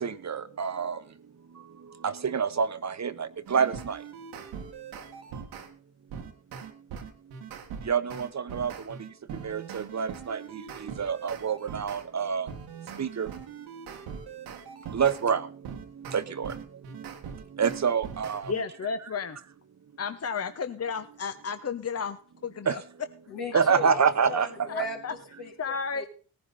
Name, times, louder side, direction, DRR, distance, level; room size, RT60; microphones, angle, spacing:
voice 1, 0.0-0.9 2.0-4.0 7.9-8.7 9.4-10.4 11.0-12.5 13.0-13.3 14.9-15.4 16.1-16.5 17.6-18.4 22.7-22.8 23.5-24.5, right 6 dB, 45° right, 1.1 m, -27 dB
sound 1, 3.5-5.7 6.1-12.0 12.5-15.2 15.6-18.6, right 7 dB, 85° right, 1.8 m, -41 dB
voice 2, 18.5-19.4 20.0-22.8 23.5-23.6 25.0-25.1 25.6-26.1, left 5 dB, 40° left, 1.1 m, -32 dB
voice 3, 23.3-26.1, left 3 dB, 80° left, 4.4 m, -38 dB
18.0 x 10.5 x 4.2 m
hypercardioid pair, 40°, 39 cm